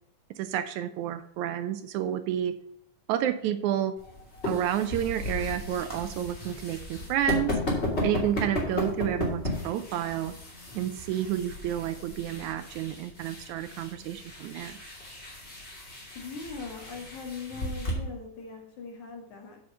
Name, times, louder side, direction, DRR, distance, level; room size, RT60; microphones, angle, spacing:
voice 1, 0.4-2.5 3.1-3.9 4.5-7.5 8.0-10.3 10.8-14.8, right 11 dB, 80° right, 11 dB, 1.9 m, -30 dB
sound 1, 4.0-17.9, left 1 dB, 20° left, 2.5 m, -35 dB
voice 2, 16.2-19.6, left 4 dB, 65° left, 1 dB, 3.3 m, -40 dB
9.6 x 5.1 x 5.5 m, 0.76 s
omnidirectional pair, 3.6 m